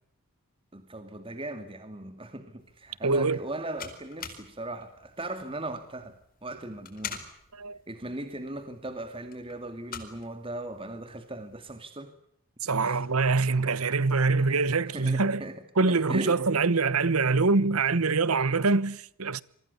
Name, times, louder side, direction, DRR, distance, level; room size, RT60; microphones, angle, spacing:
voice 1, 0.7-7.2 7.9-12.1 12.8-13.0 14.4-16.4, right 1 dB, 25° right, 2.4 m, -38 dB
sound 1, 2.6-11.8, left 7 dB, 40° left, 4.5 m, -46 dB
voice 2, 3.0-3.4 7.5-7.8 12.6-15.4 15.8-19.4, right 3 dB, 75° right, 1.1 m, -24 dB
27.5 x 24.0 x 7.0 m
head